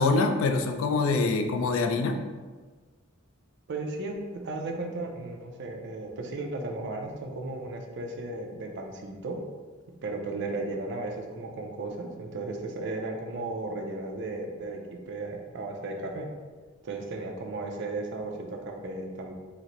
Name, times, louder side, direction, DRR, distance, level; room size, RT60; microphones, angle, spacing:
voice 1, 0.0-2.2, left 3 dB, 70° left, 6 dB, 0.3 m, -25 dB
voice 2, 3.7-9.4 10.0-16.3 16.8-19.3, right 2 dB, 55° right, 2 dB, 0.4 m, -35 dB
3.8 x 2.1 x 2.9 m, 1.4 s
head